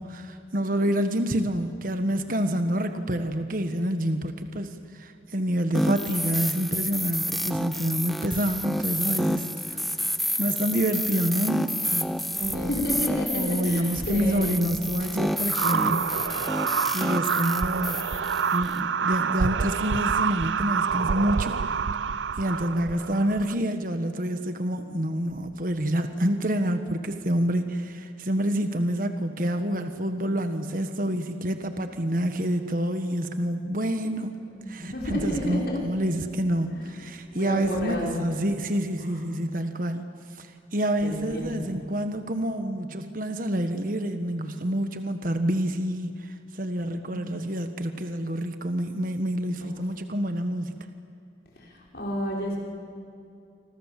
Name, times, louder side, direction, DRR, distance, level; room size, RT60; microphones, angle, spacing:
voice 1, 0.0-9.9 10.4-13.1 13.3-16.1 16.9-18.0 18.5-21.5 22.4-34.4 34.7-40.1 40.4-50.9, right 1 dB, 45° right, 7 dB, 1.4 m, -28 dB
sound 1, 5.7-18.8, equal, ahead, 0.7 m, -30 dB
voice 2, 12.3-14.6 34.6-35.8 36.8-36.9 37.3-38.2 39.1-39.2 41.0-41.6 46.8-47.3 51.9-52.6, left 1 dB, 55° left, -2 dB, 6.0 m, -30 dB
sound 2, 15.5-23.5, right 6 dB, 85° right, 0.5 m, -27 dB
27.0 x 26.0 x 7.6 m, 2.5 s
head